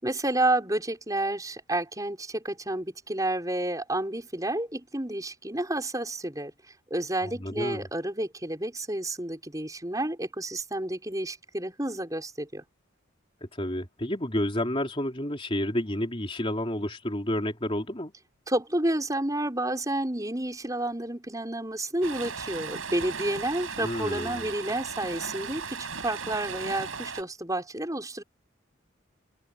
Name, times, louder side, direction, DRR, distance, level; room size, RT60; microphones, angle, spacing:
voice 1, 0.0-6.5 6.9-12.6 18.5-28.2, right 1 dB, 15° right, 5.5 m, -30 dB
voice 2, 7.3-7.9 13.6-18.1 23.8-24.5, left 1 dB, 25° left, 3.9 m, -30 dB
Stream, 22.0-27.2, right 5 dB, 75° right, 6.9 m, -37 dB
open air
head